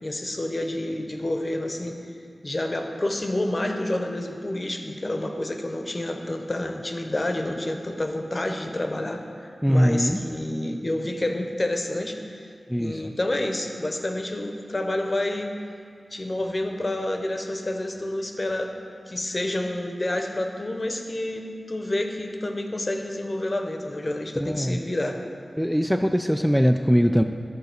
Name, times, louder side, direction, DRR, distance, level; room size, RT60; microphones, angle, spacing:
voice 1, 0.0-2.0 2.4-12.5 12.8-15.5 16.1-18.7 19.1-25.2, left 1 dB, 40° left, 4 dB, 0.9 m, -29 dB
voice 2, 9.6-10.2 12.7-13.1 24.4-24.8 25.6-27.2, equal, ahead, 5 dB, 0.3 m, -21 dB
10.5 x 4.0 x 6.5 m, 2.3 s
cardioid pair, 40°, 0 cm